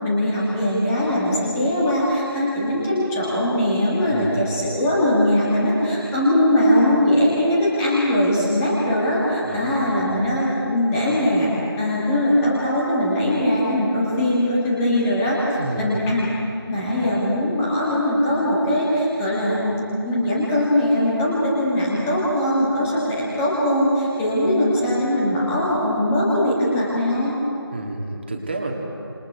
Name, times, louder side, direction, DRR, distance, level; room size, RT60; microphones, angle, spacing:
voice 1, 0.0-11.5 11.8-15.4 15.8-16.3 16.7-27.4, left 1 dB, 5° left, -7 dB, 1.7 m, -21 dB
voice 2, 4.1-4.4 9.4-9.8 15.6-15.9 27.7-28.7, right 2 dB, 25° right, 0 dB, 2.2 m, -30 dB
30.0 x 27.5 x 4.7 m, 2.6 s
figure-of-eight pair, 170°, 13 cm